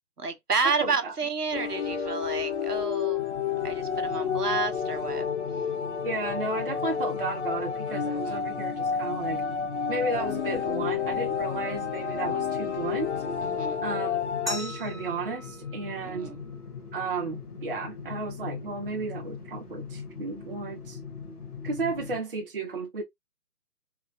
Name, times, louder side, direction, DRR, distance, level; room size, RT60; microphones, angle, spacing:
voice 1, 0.2-3.3 3.6-5.3 8.1-8.4 13.4-13.8 16.0-16.4, right 4 dB, 75° right, 1.1 m, -30 dB
voice 2, 0.8-1.1 6.0-9.4 9.9-13.1 13.8-16.3 16.9-21.0 21.6-23.0, right 3 dB, 35° right, 0.7 m, -33 dB
sound 1, 1.5-14.6, left 7 dB, 45° left, 0.6 m, -30 dB
sound 2, 3.2-22.2, left 5 dB, 70° left, 1.4 m, -41 dB
Glass, 14.5-17.2, equal, ahead, 0.4 m, -41 dB
3.8 x 2.8 x 2.5 m
figure-of-eight pair, 140°, 47 cm